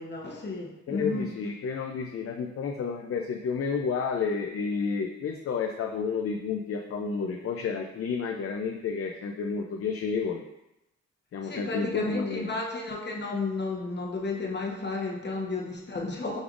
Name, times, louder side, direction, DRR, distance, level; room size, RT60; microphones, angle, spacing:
voice 1, 0.0-1.4 11.4-16.4, left 3 dB, 35° left, -1 dB, 1.0 m, -33 dB
voice 2, 0.9-10.4 11.3-12.5, left 5 dB, 50° left, 1 dB, 0.5 m, -31 dB
5.1 x 3.4 x 2.4 m, 0.89 s
cardioid pair, 70°, 29 cm